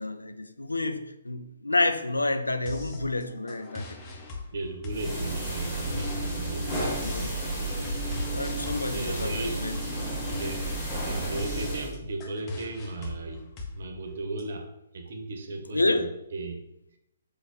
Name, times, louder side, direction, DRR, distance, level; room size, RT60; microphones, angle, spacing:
voice 1, 0.0-4.0 6.7-7.9 8.3-9.3 9.6-9.8 15.7-16.1, left 2 dB, 85° left, 9 dB, 0.4 m, -29 dB
sound 1, 2.7-14.4, left 3 dB, 25° left, 0.8 m, -41 dB
voice 2, 4.5-6.9 8.9-9.6 10.4-10.7 11.0-13.4 13.7-16.6, right 2 dB, 60° right, 5 dB, 0.6 m, -36 dB
sound 2, 4.9-11.9, right 1 dB, 5° left, 1.5 m, -32 dB
3.9 x 2.7 x 4.1 m, 0.86 s
figure-of-eight pair, 130°, 0 cm